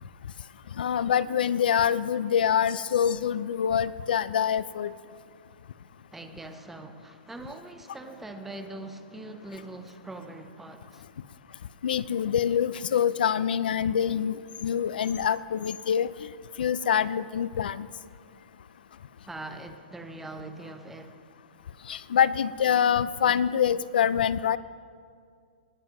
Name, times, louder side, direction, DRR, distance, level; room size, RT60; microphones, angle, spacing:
voice 1, 0.8-4.9 11.8-16.1 16.6-17.9 21.9-24.6, left 8 dB, 75° left, 0.3 m, -25 dB
voice 2, 6.1-11.0 19.3-21.2, right 2 dB, 5° right, 0.5 m, -42 dB
19.0 x 7.3 x 3.0 m
hypercardioid pair, 155°, 5 cm